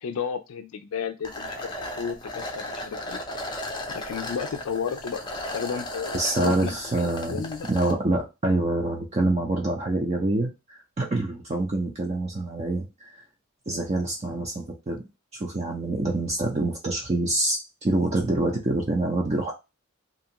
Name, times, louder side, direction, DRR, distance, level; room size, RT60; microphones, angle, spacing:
voice 1, 0.0-1.7 2.0-3.2 3.9-7.7, left 6 dB, 85° left, 7 dB, 0.4 m, -33 dB
sound 1, 1.2-7.9, left 1 dB, 20° left, 0.5 m, -35 dB
voice 2, 6.1-12.9 13.7-15.0 15.4-19.5, right 2 dB, 30° right, 0 dB, 0.5 m, -26 dB
2.6 x 2.3 x 2.8 m, 0.25 s
head